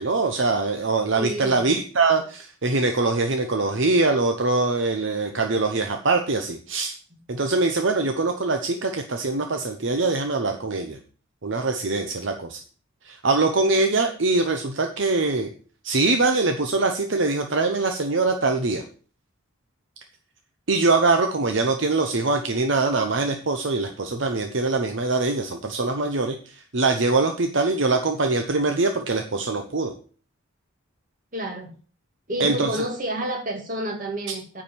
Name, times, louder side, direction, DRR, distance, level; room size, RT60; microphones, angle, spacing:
voice 1, 0.0-6.9 7.3-11.0 11.4-12.6 13.0-15.5 15.8-18.8 20.7-29.9 32.4-32.7, right 3 dB, 65° right, 5 dB, 0.9 m, -23 dB
voice 2, 1.1-1.7 31.3-31.7 32.3-34.6, right 1 dB, 40° right, 1 dB, 2.2 m, -30 dB
9.5 x 4.9 x 7.3 m, 0.41 s
head